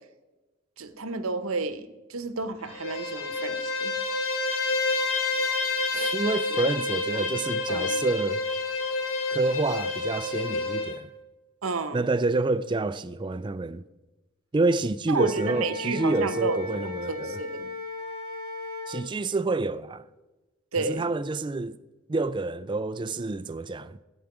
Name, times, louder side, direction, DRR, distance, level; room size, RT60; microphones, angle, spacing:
voice 1, 0.8-3.9 5.9-6.2 7.1-7.3 7.7-8.0 11.6-12.0 15.1-17.7 20.7-21.1, right 3 dB, 75° right, 0.9 m, -31 dB
Bowed string instrument, 2.7-11.0, left 3 dB, 70° left, 1.6 m, -29 dB
voice 2, 6.1-8.4 9.3-11.1 11.9-13.8 14.5-17.4 18.9-20.0 20.8-21.8 22.1-24.0, right 3 dB, 20° right, 0.3 m, -28 dB
Wind instrument woodwind instrument, 15.1-19.0, left 3 dB, 45° left, 1.3 m, -36 dB
14.0 x 8.9 x 4.8 m
head